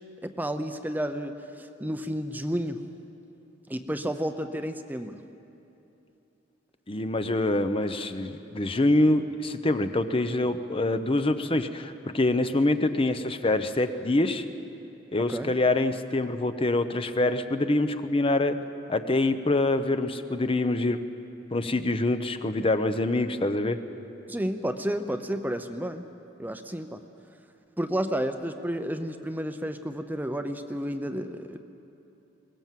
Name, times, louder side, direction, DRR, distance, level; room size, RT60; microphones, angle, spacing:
voice 1, 0.2-2.8 3.7-5.2 15.3-15.5 24.3-26.0 26.4-27.0 27.8-31.6, equal, 10° right, 8 dB, 0.7 m, -31 dB
voice 2, 6.9-14.4 15.1-18.6 18.9-21.0 21.5-23.8, left 2 dB, 30° left, 9 dB, 0.8 m, -25 dB
22.0 x 19.0 x 7.5 m, 2.9 s
head